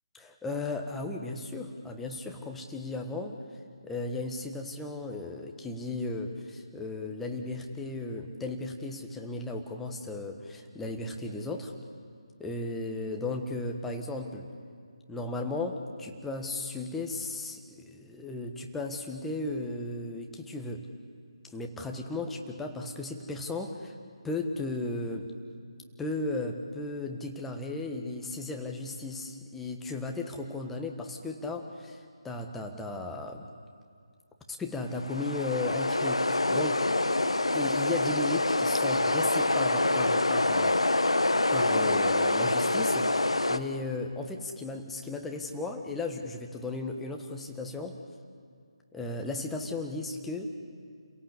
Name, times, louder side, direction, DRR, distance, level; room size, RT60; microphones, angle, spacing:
voice 1, 0.1-3.4 3.8-11.7 12.4-14.5 15.1-20.9 21.5-23.9 24.2-25.3 26.0-33.5 34.5-36.9 37.5-40.8 41.5-43.1 43.5-48.0 48.9-50.5, left 2 dB, 5° left, 2 dB, 1.4 m, -35 dB
sound 1, 34.9-43.6, left 2 dB, 80° left, 1.2 m, -26 dB
30.0 x 17.5 x 8.3 m, 2.3 s
figure-of-eight pair, 150°, 3 cm